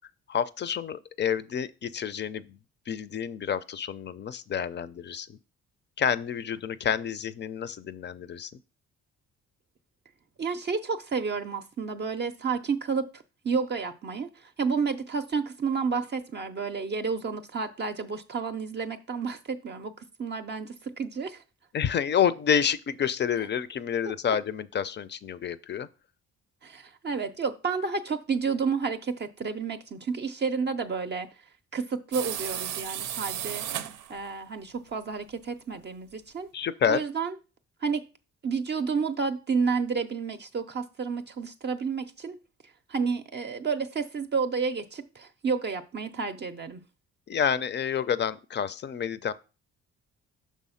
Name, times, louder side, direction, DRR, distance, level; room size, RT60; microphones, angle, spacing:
voice 1, 0.3-2.6 2.9-5.4 6.0-8.5 21.7-25.9 36.5-37.0 47.3-49.3, left 8 dB, 35° left, 0.5 m, -29 dB
voice 2, 10.4-21.4 26.6-31.3 31.7-33.7 34.1-36.5 36.9-37.3 37.8-38.0 38.4-42.4 42.9-46.8, right 5 dB, 35° right, 0.5 m, -30 dB
sound 1, 32.1-34.3, right 10 dB, 85° right, 0.6 m, -34 dB
6.3 x 3.4 x 5.7 m
cardioid pair, 90°, 30 cm